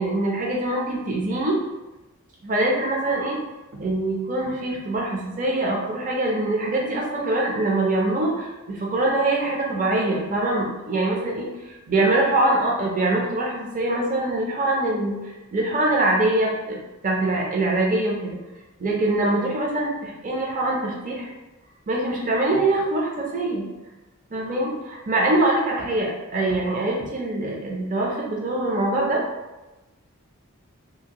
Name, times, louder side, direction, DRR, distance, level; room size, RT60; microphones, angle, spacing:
voice 1, 0.0-1.6 2.4-3.4 3.7-18.4 18.8-21.3 21.9-23.7 24.3-29.2, right 2 dB, 40° right, -1 dB, 0.5 m, -24 dB
2.7 x 2.4 x 2.8 m, 1.1 s
head